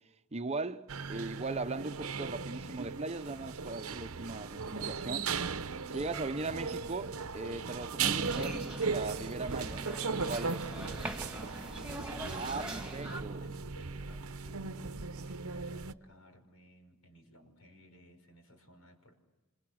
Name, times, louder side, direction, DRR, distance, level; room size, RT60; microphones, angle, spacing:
voice 1, 0.3-5.3 5.9-9.8 10.1-10.6 12.3-13.5, right 3 dB, 30° right, 0.8 m, -39 dB
sound 1, 0.9-15.9, right 5 dB, 85° right, 0.9 m, -37 dB
sound 2, 8.2-13.2, right 1 dB, 5° right, 2.6 m, -43 dB
voice 2, 10.4-12.2 13.4-19.1, left 1 dB, 90° left, 6.2 m, -57 dB
28.5 x 26.5 x 6.4 m
head